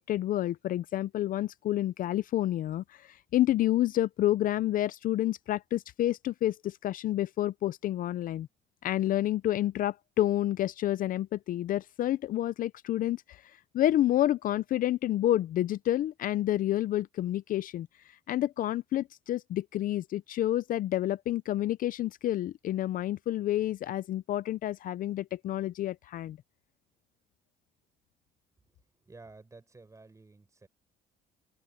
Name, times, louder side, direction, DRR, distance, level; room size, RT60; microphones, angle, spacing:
voice 1, 0.0-8.5 8.8-17.9 18.3-26.4, left 13 dB, 55° left, 0.5 m, -29 dB
voice 2, 29.0-30.7, right 3 dB, 20° right, 7.0 m, -52 dB
cardioid pair, 110°, 17 cm